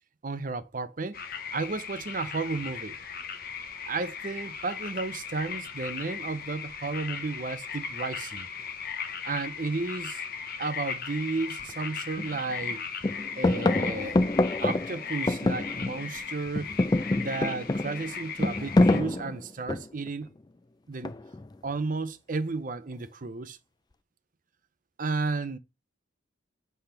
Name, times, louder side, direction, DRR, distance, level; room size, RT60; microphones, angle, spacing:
voice 1, 0.2-1.2 1.5-3.0 3.9-8.5 9.2-10.2 10.6-12.9 13.4-14.2 14.6-16.7 17.1-20.3 20.9-21.1 21.6-23.6 25.0-25.6, right 3 dB, 45° right, 0.6 m, -33 dB
sound 1, 1.1-19.0, left 6 dB, 50° left, 0.9 m, -38 dB
sound 2, 11.6-11.7 12.2-12.7 13.0-16.2 16.5-20.1 21.0-21.5, left 2 dB, 20° left, 0.4 m, -26 dB
7.8 x 3.4 x 5.7 m
head